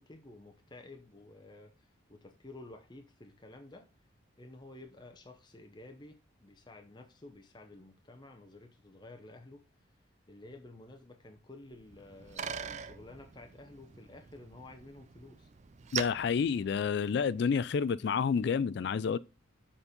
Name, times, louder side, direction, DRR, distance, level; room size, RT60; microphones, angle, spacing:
voice 1, 0.0-3.9 4.4-9.6 10.3-15.5, left 2 dB, 20° left, 0.8 m, -52 dB
Bicycle, 11.7-17.4, right 7 dB, 35° right, 0.4 m, -43 dB
voice 2, 15.9-19.2, left 6 dB, 55° left, 0.3 m, -29 dB
7.0 x 4.3 x 5.1 m
head